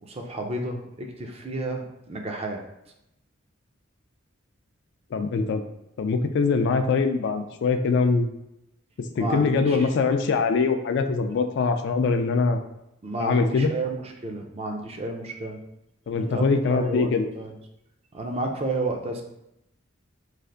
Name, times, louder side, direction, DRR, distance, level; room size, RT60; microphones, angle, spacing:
voice 1, 0.0-2.6 9.2-9.9 13.0-15.6 16.1-17.6 18.1-19.2, right 2 dB, 30° right, 3 dB, 0.5 m, -31 dB
voice 2, 5.1-5.6 6.0-8.3 9.2-12.6 13.2-13.7 16.1-17.3, left 4 dB, 60° left, 7 dB, 0.3 m, -23 dB
3.2 x 2.5 x 3.7 m, 0.85 s
head